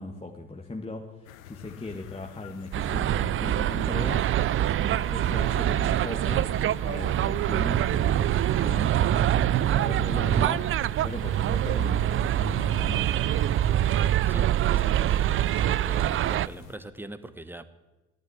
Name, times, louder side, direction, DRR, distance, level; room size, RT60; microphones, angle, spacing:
voice 1, 0.0-4.4 4.8-6.6 6.8-10.7 11.0-13.1, left 2 dB, 15° left, 1 dB, 1.7 m, -38 dB
sound 1, 1.3-16.8, left 11 dB, 80° left, 0.8 m, -47 dB
sound 2, 2.7-16.5, right 12 dB, 35° right, 0.4 m, -25 dB
voice 2, 14.3-17.6, right 1 dB, 5° right, 12 dB, 1.2 m, -42 dB
13.5 x 10.5 x 9.7 m, 1.1 s
hypercardioid pair, 60°, 40 cm